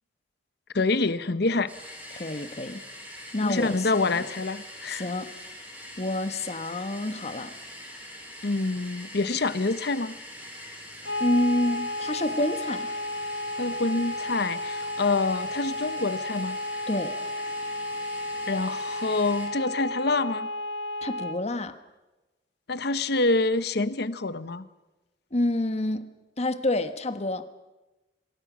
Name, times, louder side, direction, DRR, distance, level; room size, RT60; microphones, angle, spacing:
voice 1, 0.7-1.7 2.1-2.3 3.4-5.1 8.4-10.2 13.6-16.6 18.5-20.5 22.7-24.7, left 3 dB, 65° left, 14 dB, 1.0 m, -26 dB
sound 1, 1.7-19.5, left 1 dB, 10° right, 7.4 m, -43 dB
voice 2, 2.1-2.8 3.3-4.2 4.9-5.3 6.0-7.5 11.2-12.9 16.9-17.2 21.0-21.8 25.3-27.5, left 1 dB, 40° left, 10 dB, 1.4 m, -28 dB
sound 2, 11.0-21.4, left 1 dB, 85° left, 1.3 m, -33 dB
25.5 x 22.5 x 6.2 m, 1.1 s
head